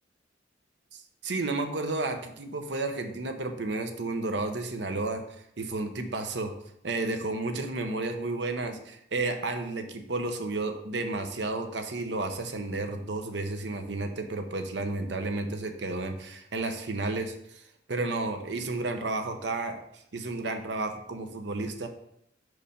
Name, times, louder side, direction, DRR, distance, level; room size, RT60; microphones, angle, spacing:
voice 1, 0.9-5.2 5.6-6.5 6.8-17.6 17.9-21.9, right 2 dB, 70° right, 6 dB, 0.8 m, -32 dB
5.4 x 4.8 x 5.1 m, 0.76 s
head